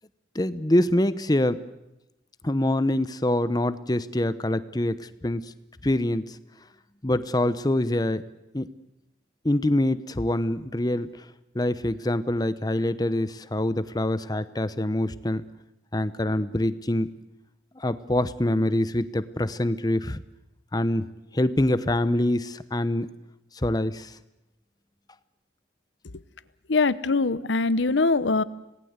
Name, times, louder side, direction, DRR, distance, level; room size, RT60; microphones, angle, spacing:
voice 1, 0.3-1.6 2.4-5.5 5.8-6.4 7.0-8.2 8.5-8.7 9.4-11.3 11.5-15.4 15.9-17.1 17.8-20.2 20.7-21.1 21.3-23.1 23.5-24.2, left 1 dB, 20° left, 14 dB, 0.8 m, -25 dB
voice 2, 26.7-28.4, left 3 dB, 85° left, 16 dB, 0.9 m, -22 dB
26.5 x 18.5 x 8.1 m, 0.91 s
head